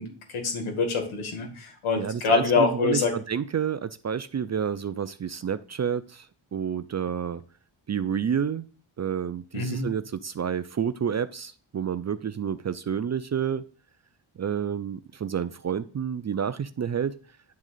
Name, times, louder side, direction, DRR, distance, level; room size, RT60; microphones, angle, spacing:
voice 1, 0.0-3.1 9.5-9.8, left 4 dB, 85° left, 3 dB, 2.1 m, -25 dB
voice 2, 2.0-6.3 6.5-7.4 7.9-8.7 9.0-13.6 14.4-17.1, right 7 dB, 35° right, 13 dB, 0.5 m, -29 dB
10.5 x 3.6 x 6.7 m, 0.40 s
cardioid pair, 90°, 48 cm